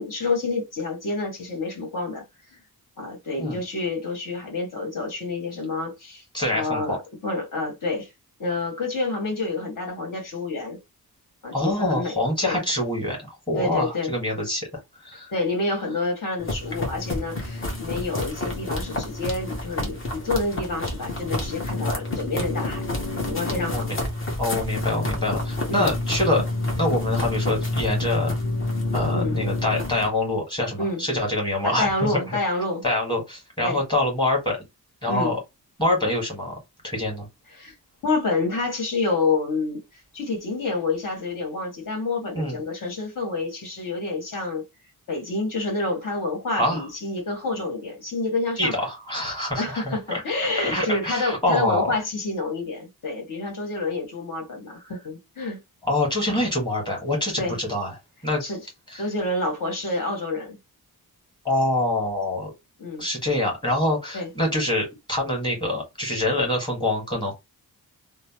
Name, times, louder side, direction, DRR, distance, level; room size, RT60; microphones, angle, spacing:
voice 1, 0.0-2.2 3.0-6.2 6.5-8.1 8.4-10.8 11.4-12.2 12.4-12.6 13.5-14.1 15.3-22.8 23.2-23.9 25.7-25.9 29.1-29.4 30.8-31.0 31.6-32.8 33.6-33.8 35.1-35.3 37.5-37.7 38.0-39.8 40.1-44.7 45.1-48.7 49.6-55.6 57.4-57.6 58.4-58.6 59.0-60.6 62.8-63.0 64.1-64.3, left 3 dB, 55° left, 1.6 m, -28 dB
voice 2, 6.3-7.0 11.5-14.7 15.0-15.3 23.7-23.9 24.4-26.4 26.8-28.3 28.9-31.9 32.8-34.6 35.0-35.4 35.8-36.6 36.8-37.3 42.3-42.6 46.6-46.8 48.6-50.2 50.6-51.9 55.8-57.9 58.2-58.4 58.9-59.0 61.4-62.5 63.0-67.3, left 1 dB, 10° left, 1.7 m, -25 dB
running in the woods, 16.4-30.1, left 2 dB, 35° left, 1.0 m, -28 dB
3.1 x 2.0 x 2.9 m
wide cardioid pair, 145°, 37 cm